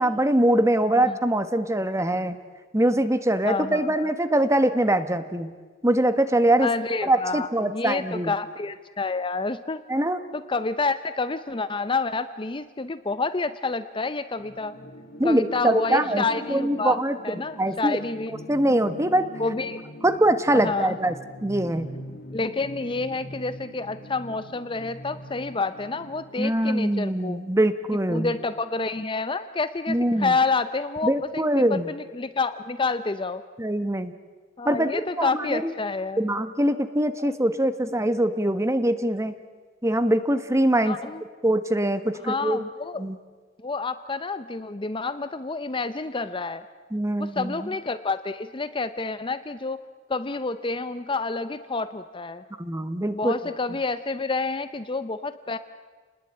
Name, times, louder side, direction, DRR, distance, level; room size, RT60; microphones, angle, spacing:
voice 1, 0.0-2.4 2.7-5.5 5.8-6.7 7.0-8.3 9.9-10.2 15.2-17.2 17.6-18.0 18.5-19.2 20.0-21.1 21.4-21.9 26.4-28.3 29.9-30.3 31.0-31.9 33.6-34.1 34.6-35.7 36.2-39.3 39.8-41.0 41.4-42.6 43.0-43.2 46.9-47.5 52.6-53.4, right 1 dB, 15° right, 11 dB, 1.2 m, -23 dB
voice 2, 3.4-4.1 6.6-9.8 10.3-14.8 15.2-17.0 17.2-18.4 19.4-19.8 20.6-20.9 22.3-27.4 28.1-33.4 34.6-36.2 37.2-37.3 40.9-41.2 42.2-43.0 43.6-46.6 47.2-49.8 50.1-52.4 53.1-55.6, left 3 dB, 25° left, 12 dB, 0.7 m, -29 dB
sound 1, 14.4-26.4, left 1 dB, 50° left, 2.7 m, -41 dB
29.0 x 20.0 x 9.0 m, 1.5 s
head